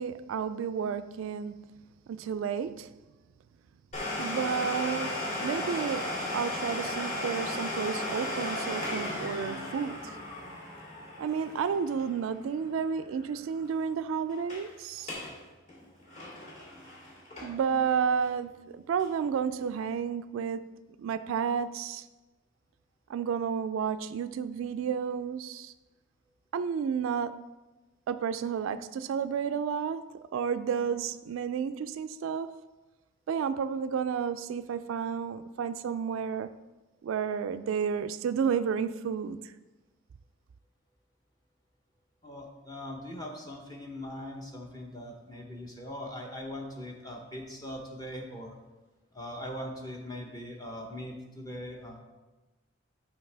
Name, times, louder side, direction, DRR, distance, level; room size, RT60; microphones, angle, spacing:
voice 1, 0.0-1.6 2.1-2.9 4.2-10.2 11.2-15.1 17.4-20.7 21.0-22.0 23.1-25.7 26.5-27.5 28.1-32.6 33.3-36.5 37.0-39.4, right 7 dB, 85° right, 0.3 m, -31 dB
Domestic sounds home sounds, 3.9-13.4 13.6-13.7 14.3-14.7 15.0-15.3 15.7-17.7 18.2-18.3 19.0-19.1, left 1 dB, 35° left, 2.3 m, -35 dB
voice 2, 42.2-48.5 49.1-52.0, left 1 dB, 20° left, 0.8 m, -41 dB
10.0 x 5.7 x 3.3 m
head